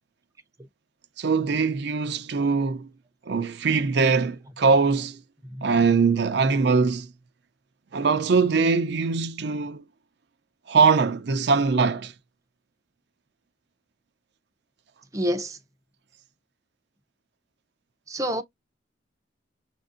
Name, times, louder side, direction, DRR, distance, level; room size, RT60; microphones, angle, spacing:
voice 1, 1.2-2.9 3.3-5.2 5.6-7.1 7.9-9.8 10.7-12.1, right 4 dB, 65° right, 0.5 m, -22 dB
voice 2, 15.1-15.6 18.1-18.4, equal, 20° right, 0.6 m, -28 dB
6.8 x 2.6 x 2.5 m
head